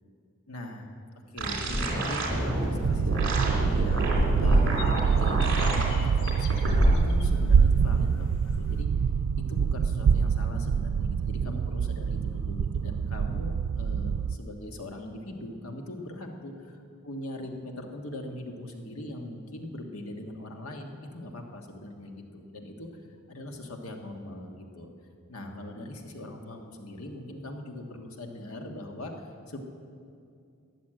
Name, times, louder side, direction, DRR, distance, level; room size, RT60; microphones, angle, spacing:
voice 1, 0.5-0.9 1.3-4.0 4.4-4.9 5.2-8.9 9.5-16.5 17.0-22.9 23.3-24.9 25.3-29.6, left 1 dB, 90° left, 3 dB, 1.6 m, -40 dB
sound 1, 1.4-5.8 6.3-6.8, right 2 dB, 60° right, 2.9 m, -29 dB
sound 2, 1.7-2.4 2.9-3.0 3.2-3.5 3.8-8.8, equal, 65° left, 1.0 m, -29 dB
sound 3, 2.8-14.3, right 6 dB, 85° right, 0.3 m, -26 dB
14.0 x 10.5 x 7.7 m, 2.4 s
head